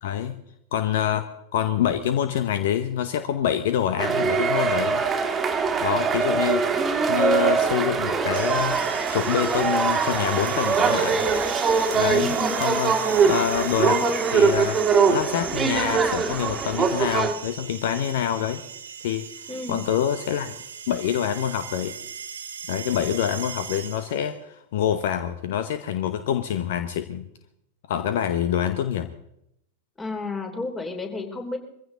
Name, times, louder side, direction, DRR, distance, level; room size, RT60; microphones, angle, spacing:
voice 1, 0.0-0.4 0.7-1.2 1.5-5.0 5.8-6.6 7.1-8.8 9.1-11.2 11.9-12.3 12.6-13.0 13.2-14.8 15.1-18.6 19.0-19.2 19.7-20.5 20.9-21.9 22.7-27.3 27.9-29.1, left 10 dB, 55° left, 10 dB, 1.1 m, -26 dB
sound 1, 4.0-17.3, right 5 dB, 20° right, 2.1 m, -22 dB
sound 2, 8.3-24.3, right 7 dB, 65° right, 1.3 m, -38 dB
voice 2, 12.0-12.6 19.5-19.8 30.0-31.6, left 3 dB, 15° left, 5 dB, 3.2 m, -31 dB
22.5 x 15.5 x 3.9 m, 0.78 s
figure-of-eight pair, 90°, 0 cm